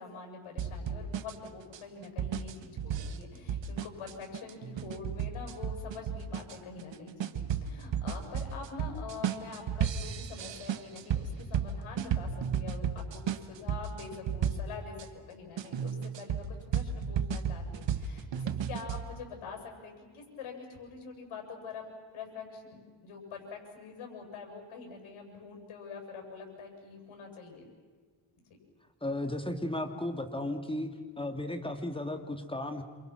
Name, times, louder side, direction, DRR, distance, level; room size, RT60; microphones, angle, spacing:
voice 1, 0.0-21.8 22.1-27.7, left 5 dB, 80° left, 2 dB, 8.0 m, -45 dB
sound 1, 0.6-15.1 15.6-19.0, right 7 dB, 65° right, 1.5 m, -34 dB
voice 2, 29.0-30.9 31.2-32.8, left 1 dB, 10° left, 7 dB, 2.6 m, -34 dB
28.5 x 28.0 x 6.1 m, 1.5 s
cardioid pair, 95°, 48 cm